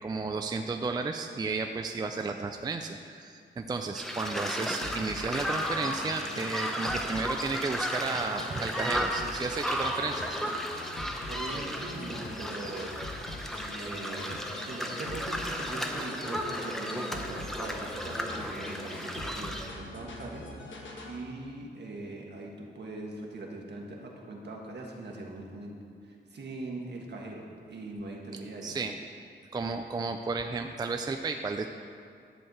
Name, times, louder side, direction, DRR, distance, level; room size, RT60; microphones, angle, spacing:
voice 1, 0.0-10.4 28.6-29.0 29.5-31.7, right 4 dB, 20° right, 5 dB, 0.3 m, -33 dB
sound 1, 4.0-19.7, equal, ahead, 0.7 m, -34 dB
sound 2, 4.8-21.2, left 2 dB, 85° left, 1.3 m, -44 dB
voice 2, 11.3-13.0 13.6-25.7 26.0-28.8, right 2 dB, 65° right, -1 dB, 1.5 m, -41 dB
10.5 x 4.5 x 7.9 m, 2.3 s
wide cardioid pair, 145°, 19 cm